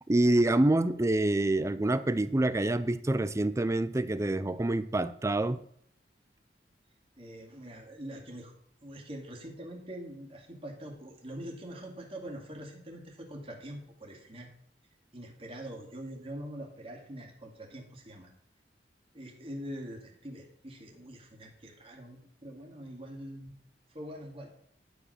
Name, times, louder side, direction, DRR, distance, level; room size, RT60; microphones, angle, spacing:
voice 1, 0.1-5.6, right 1 dB, 15° right, 14 dB, 0.4 m, -26 dB
voice 2, 7.2-8.5 8.8-14.5 15.1-18.3 19.1-23.6 23.9-24.5, right 1 dB, 35° right, 1 dB, 2.3 m, -44 dB
11.5 x 5.0 x 6.4 m, 0.65 s
head